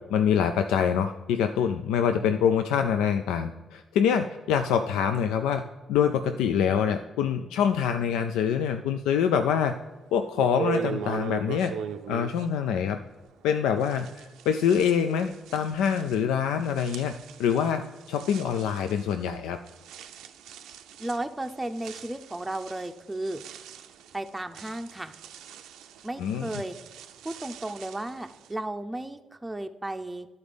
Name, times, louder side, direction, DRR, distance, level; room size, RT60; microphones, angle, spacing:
voice 1, 0.1-5.6 5.9-9.8 10.1-11.7 12.1-13.0 13.4-17.1 17.4-19.6 26.2-26.5, left 8 dB, 90° left, 7 dB, 0.3 m, -25 dB
sound 1, 9.8-9.9 10.3-13.5 13.8-28.5, right 8 dB, 85° right, 0.5 m, -40 dB
voice 2, 21.0-23.4 24.1-25.1 26.0-26.8 27.2-30.3, right 1 dB, 15° right, 5 dB, 0.5 m, -34 dB
11.0 x 4.1 x 5.1 m, 1.2 s
supercardioid pair, 60°, 0 cm